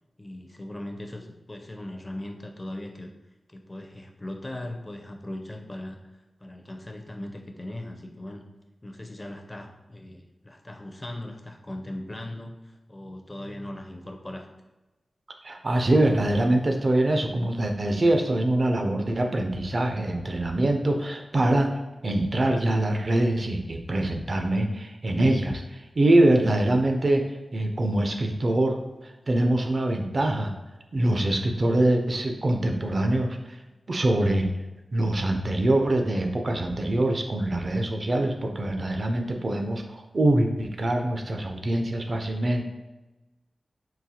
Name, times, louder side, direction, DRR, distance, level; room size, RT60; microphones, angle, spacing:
voice 1, 0.2-3.1 3.5-6.0 6.4-8.4 8.8-14.5, left 1 dB, 25° left, 3 dB, 0.4 m, -39 dB
voice 2, 15.4-21.7 22.0-27.2 27.5-28.8 29.0-30.5 30.9-33.6 33.9-34.5 34.9-42.6, right 1 dB, 50° right, 4 dB, 0.4 m, -24 dB
3.9 x 2.4 x 2.7 m, 1.1 s
wide cardioid pair, 85°, 0 cm